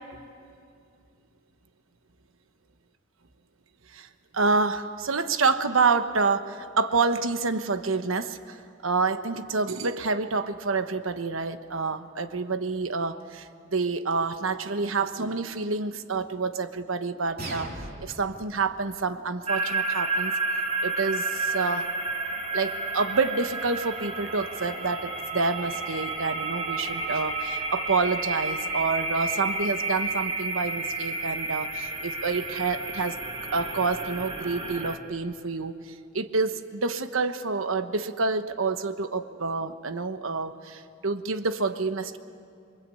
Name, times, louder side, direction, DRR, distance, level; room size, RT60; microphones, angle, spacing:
voice 1, 4.3-17.7 18.0-20.3 20.8-21.9 22.5-33.2 33.5-42.2, right 4 dB, 85° right, 9 dB, 1.1 m, -28 dB
sound 1, 17.4-18.4, right 1 dB, 50° right, 3.0 m, -37 dB
sound 2, 19.5-35.0, right 3 dB, 25° right, 1.9 m, -31 dB
27.5 x 24.0 x 8.5 m, 2.4 s
head